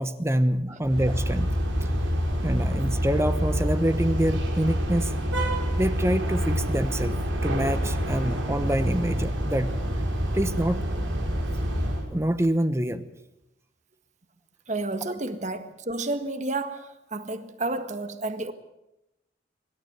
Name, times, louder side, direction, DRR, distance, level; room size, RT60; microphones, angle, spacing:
voice 1, 0.0-1.5 1.8-1.9 2.4-5.1 5.7-7.1 7.4-9.8 10.3-10.8 12.1-13.0, right 1 dB, 15° right, 1.1 m, -26 dB
sound 1, 0.8-12.1, equal, 85° right, 5.8 m, -27 dB
voice 2, 14.7-18.5, right 2 dB, 40° right, 1.7 m, -31 dB
25.0 x 13.0 x 9.5 m
head